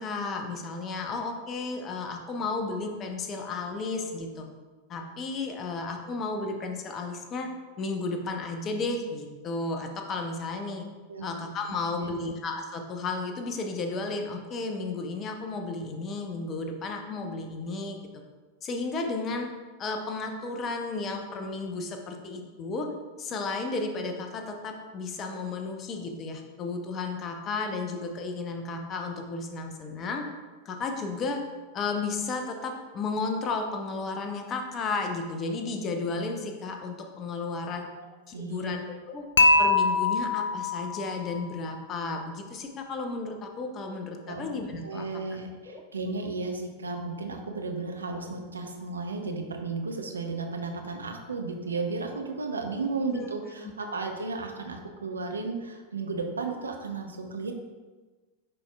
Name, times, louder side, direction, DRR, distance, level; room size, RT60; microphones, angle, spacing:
voice 1, 0.0-4.5 4.9-7.5 7.8-10.9 11.2-18.0 18.6-19.5 19.8-22.9 23.2-30.3 30.6-31.4 31.7-37.9 38.3-38.8 39.1-39.3 39.6-45.2 45.7-45.8 53.1-53.3, left 3 dB, 30° left, 4 dB, 0.8 m, -33 dB
voice 2, 38.3-38.8 44.3-44.5 44.8-57.5, right 3 dB, 75° right, 4 dB, 0.7 m, -34 dB
Dishes pots and pans / Chink clink, 39.4-41.5, left 3 dB, 65° left, 0.4 m, -23 dB
9.9 x 4.4 x 2.3 m, 1.3 s
figure-of-eight pair, 90°, 0 cm